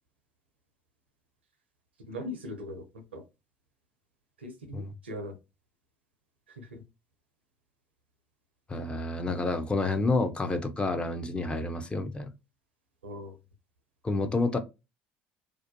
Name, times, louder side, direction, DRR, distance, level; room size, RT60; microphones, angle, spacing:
voice 1, 2.1-2.8 3.1-3.2 4.4-5.3 6.6-6.7 13.0-13.3, left 1 dB, 80° right, 0.5 m, -39 dB
voice 2, 8.7-12.3 14.0-14.6, left 3 dB, 20° left, 0.4 m, -29 dB
2.4 x 2.2 x 2.6 m
figure-of-eight pair, 60°, 6 cm